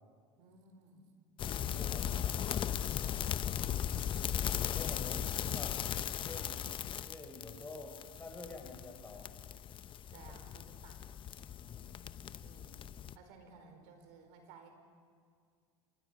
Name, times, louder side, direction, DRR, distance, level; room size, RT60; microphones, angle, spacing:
voice 1, 0.4-1.2 3.4-4.3 4.7-4.8 10.1-11.2 12.4-14.7, right 4 dB, 75° right, 5 dB, 4.6 m, -58 dB
sound 1, 1.4-13.1, left 10 dB, 40° left, 0.8 m, -38 dB
voice 2, 1.4-2.7 4.7-5.8 6.2-6.5 7.0-9.3 11.6-12.0, left 3 dB, 20° left, 3 dB, 4.8 m, -48 dB
27.5 x 23.5 x 5.7 m, 2.1 s
supercardioid pair, 105°, 13 cm